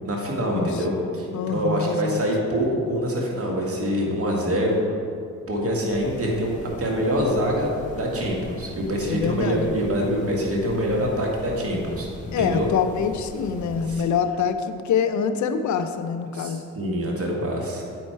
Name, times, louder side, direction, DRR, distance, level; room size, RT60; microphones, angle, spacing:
voice 1, 0.0-4.8 5.5-12.1 12.4-12.7 13.9-14.0 16.3-17.9, equal, 40° right, -1 dB, 1.7 m, -25 dB
voice 2, 0.5-0.8 1.3-2.2 9.1-9.8 12.3-16.6, left 6 dB, 55° left, 9 dB, 0.6 m, -25 dB
sound 1, 5.9-14.0, left 2 dB, 20° left, 1.5 m, -41 dB
8.5 x 4.3 x 4.5 m, 2.4 s
supercardioid pair, 65°, 34 cm